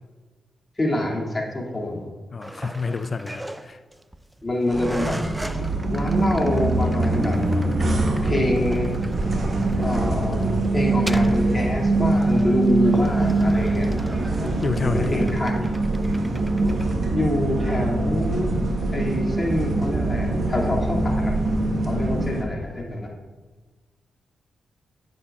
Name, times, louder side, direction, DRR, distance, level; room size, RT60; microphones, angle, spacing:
voice 1, 0.8-2.1 4.4-5.2 5.5-7.4 8.2-8.9 9.8-13.9 14.8-15.5 17.1-18.5 18.9-23.1, left 1 dB, 30° left, -2 dB, 2.5 m, -26 dB
voice 2, 2.3-3.8 14.6-15.3, left 4 dB, 50° left, 12 dB, 0.4 m, -29 dB
sound 1, 2.4-16.9, right 1 dB, 10° right, 0.5 m, -37 dB
sound 2, 4.7-22.4, right 2 dB, 60° right, 1.4 m, -23 dB
9.1 x 9.1 x 2.4 m, 1.3 s
supercardioid pair, 40°, 0 cm